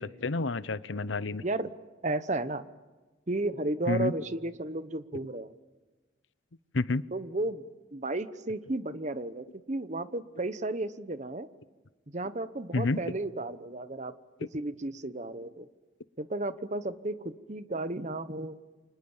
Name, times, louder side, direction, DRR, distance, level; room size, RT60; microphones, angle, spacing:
voice 1, 0.0-1.4 3.9-4.1 6.7-7.0 12.7-13.0, left 3 dB, 75° left, 16 dB, 0.8 m, -29 dB
voice 2, 1.4-1.7 2.0-2.7 3.3-5.5 7.1-11.5 12.1-14.1 14.5-15.7 16.2-18.6, right 2 dB, 35° right, 13 dB, 1.0 m, -33 dB
29.5 x 26.0 x 7.2 m, 1.3 s
head